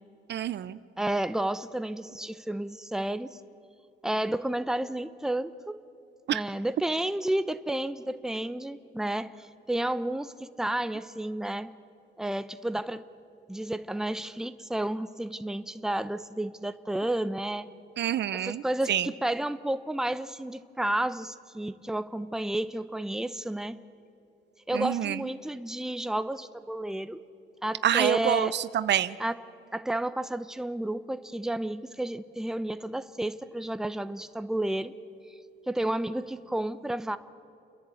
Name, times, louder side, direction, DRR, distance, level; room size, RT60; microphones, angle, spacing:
voice 1, 0.3-0.8 6.3-6.4 18.0-18.6 18.9-19.1 24.7-25.2 27.8-29.2, right 11 dB, 60° right, 16 dB, 0.6 m, -27 dB
voice 2, 1.0-3.4 4.0-5.8 6.3-11.7 12.2-13.0 13.5-17.7 18.3-23.8 24.7-27.2 27.6-28.5 29.2-29.3 29.7-34.9 35.7-37.2, right 1 dB, 5° right, 12 dB, 0.8 m, -31 dB
29.0 x 11.0 x 8.4 m, 2.6 s
cardioid pair, 90°, 20 cm